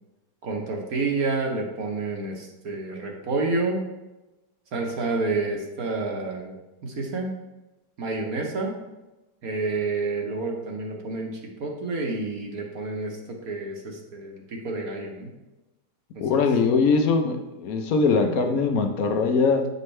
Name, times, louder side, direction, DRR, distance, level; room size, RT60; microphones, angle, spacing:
voice 1, 0.4-3.9 4.7-6.6 6.8-7.3 8.0-8.7 9.4-13.2 13.4-15.3 16.1-16.4 18.1-18.3, right 3 dB, 60° right, 0 dB, 1.4 m, -29 dB
voice 2, 16.2-19.7, left 4 dB, 60° left, 6 dB, 1.1 m, -21 dB
9.1 x 5.3 x 3.2 m, 1.0 s
omnidirectional pair, 1.8 m